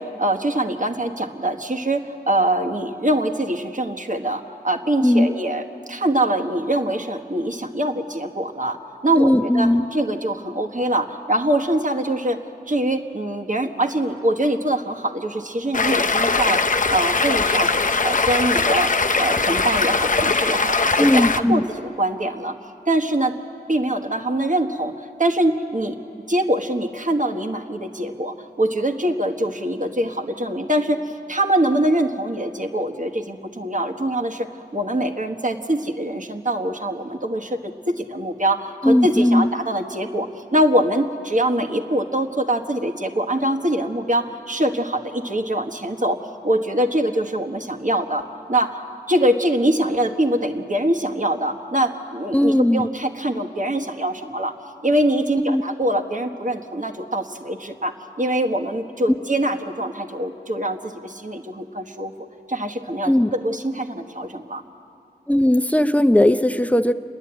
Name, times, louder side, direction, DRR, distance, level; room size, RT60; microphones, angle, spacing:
voice 1, 0.0-12.4 12.7-16.6 16.9-17.7 18.0-18.9 19.2-22.5 22.9-23.3 23.7-26.0 26.3-48.8 49.1-54.5 54.8-62.1 62.5-64.6, right 1 dB, 50° right, 3 dB, 1.3 m, -23 dB
voice 2, 5.0-5.3 9.2-9.8 21.0-21.6 38.8-39.5 52.3-52.9 55.4-55.6 63.0-63.4 65.3-66.9, left 1 dB, 10° left, 10 dB, 0.7 m, -17 dB
Stream, 15.7-21.4, left 3 dB, 50° left, 0.6 m, -20 dB
29.0 x 11.0 x 8.8 m, 2.6 s
wide cardioid pair, 50°, 17 cm